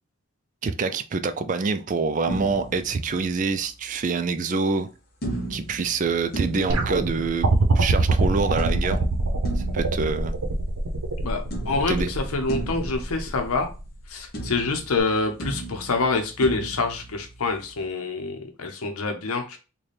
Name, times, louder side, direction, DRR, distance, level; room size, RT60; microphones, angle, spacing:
voice 1, 0.6-4.9 5.5-7.5 7.7-9.0 9.6-10.3 11.9-12.1, right 4 dB, 35° right, 0.3 m, -26 dB
sound 1, 2.3-3.8 5.2-7.8 8.6-11.2 11.5-14.1 14.3-17.8, right 2 dB, 45° left, 0.8 m, -36 dB
sound 2, 6.7-13.9 15.0-15.1, right 3 dB, 85° right, 0.7 m, -25 dB
voice 2, 11.2-13.7 14.1-19.6, left 3 dB, 90° left, 0.7 m, -26 dB
4.0 x 2.2 x 3.3 m
head